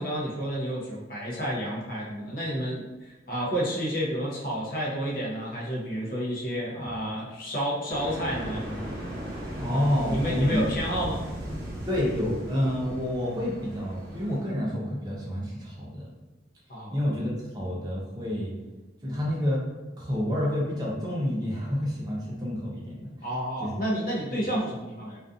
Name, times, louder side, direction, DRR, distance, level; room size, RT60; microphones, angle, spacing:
voice 1, 0.0-8.9 9.7-11.2 16.7-17.0 23.2-25.2, equal, 50° left, -4 dB, 0.6 m, -30 dB
sound 1, 7.9-14.4, equal, 45° right, 0.8 m, -36 dB
voice 2, 9.6-10.6 11.9-16.1 16.9-18.5 19.0-19.6 20.0-23.1 23.6-23.7, left 1 dB, 20° right, -5 dB, 0.5 m, -28 dB
2.5 x 2.3 x 2.4 m, 1.1 s
head